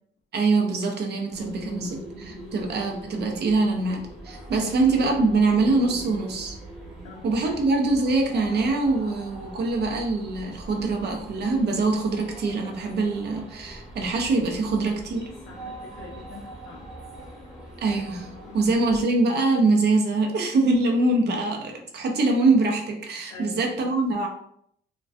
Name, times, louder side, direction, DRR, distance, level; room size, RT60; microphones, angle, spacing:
voice 1, 0.3-6.6 7.2-15.3 17.8-24.3, right 3 dB, 55° right, 2 dB, 0.6 m, -24 dB
sound 1, 1.3-19.0, right 1 dB, 5° right, 0.8 m, -42 dB
voice 2, 1.6-2.6 4.6-4.8 7.0-7.6 15.5-16.9 18.4-18.8 23.3-23.7, left 5 dB, 85° left, -1 dB, 0.4 m, -45 dB
2.4 x 2.2 x 2.3 m, 0.69 s
cardioid pair, 90°, 20 cm